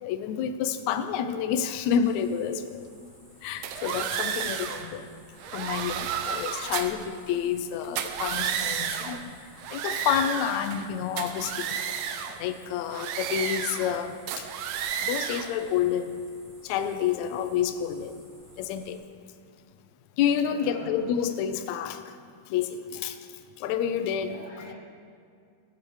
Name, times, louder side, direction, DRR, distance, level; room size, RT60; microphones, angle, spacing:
voice 1, 0.0-2.9 3.4-5.0 5.5-9.4 9.7-11.8 12.4-14.5 15.0-16.2 16.6-18.2 18.6-19.0 20.2-22.2 22.5-23.2 23.6-24.4, left 8 dB, 75° left, 9 dB, 1.8 m, -29 dB
sound 1, 2.0-19.0, right 1 dB, 65° right, 4.5 m, -55 dB
sound 2, 3.6-4.9 5.4-7.0 7.8-9.2 9.6-10.9 11.2-12.4 12.9-14.0 14.3-15.5, right 8 dB, 85° right, 1.4 m, -32 dB
voice 2, 20.4-21.0 24.2-24.7, left 2 dB, 35° left, -3 dB, 1.4 m, -43 dB
17.0 x 7.1 x 4.9 m, 2.3 s
omnidirectional pair, 3.7 m